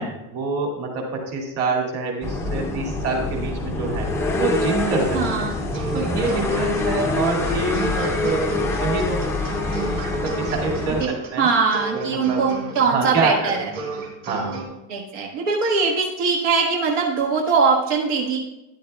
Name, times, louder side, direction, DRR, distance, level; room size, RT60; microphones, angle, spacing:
voice 1, 0.0-4.1 4.3-5.5 5.9-11.5 11.9-12.4 12.8-13.5 14.3-14.6, right 3 dB, 35° right, 0 dB, 2.2 m, -26 dB
sound 1, 2.2-11.1, left 2 dB, 5° left, 0.5 m, -25 dB
sound 2, 5.0-14.6, right 4 dB, 85° right, 3.6 m, -33 dB
voice 2, 5.1-5.6 11.0-11.1 11.4-13.7 14.9-18.4, right 5 dB, 65° right, -1 dB, 1.5 m, -21 dB
13.0 x 11.0 x 2.3 m, 0.97 s
cardioid pair, 170°, 39 cm